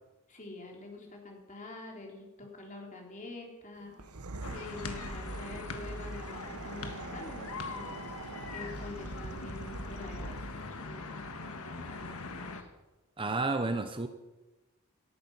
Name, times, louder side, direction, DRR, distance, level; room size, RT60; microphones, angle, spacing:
voice 1, 0.3-4.0 4.5-7.9 8.5-12.1 12.4-12.7, left 2 dB, 35° left, 1 dB, 3.6 m, -46 dB
sound 1, 3.9-10.7, right 2 dB, 85° right, 1.2 m, -43 dB
sound 2, 4.4-12.6, left 3 dB, 70° left, 1.6 m, -42 dB
voice 2, 13.2-14.1, right 3 dB, 25° right, 9 dB, 0.8 m, -31 dB
18.0 x 13.5 x 5.6 m, 1.1 s
head